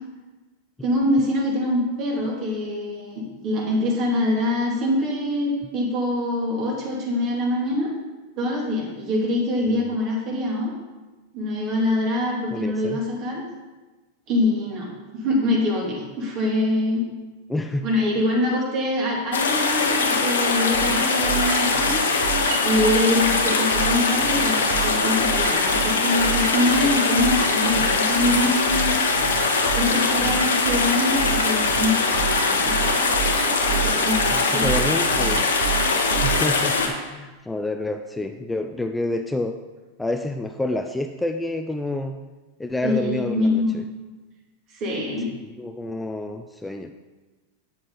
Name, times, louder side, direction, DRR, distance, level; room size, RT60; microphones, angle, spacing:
voice 1, 0.8-7.9 8.4-10.7 11.3-13.4 14.3-14.9 15.1-17.0 17.8-22.0 22.6-29.0 29.8-33.1 33.7-34.8 36.8-36.9 42.8-43.8 44.7-45.3, left 1 dB, 45° right, -2 dB, 3.0 m, -24 dB
voice 2, 12.5-13.0 17.5-17.9 34.3-35.5 36.2-39.6 40.0-42.2 42.6-43.8 45.4-46.9, left 2 dB, 10° left, 6 dB, 0.5 m, -28 dB
sound 1, 19.3-36.9, left 4 dB, 80° left, 1.1 m, -22 dB
sound 2, 20.7-36.6, right 9 dB, 65° right, 0.9 m, -31 dB
8.5 x 7.5 x 4.0 m, 1.2 s
hypercardioid pair, 95°, 0 cm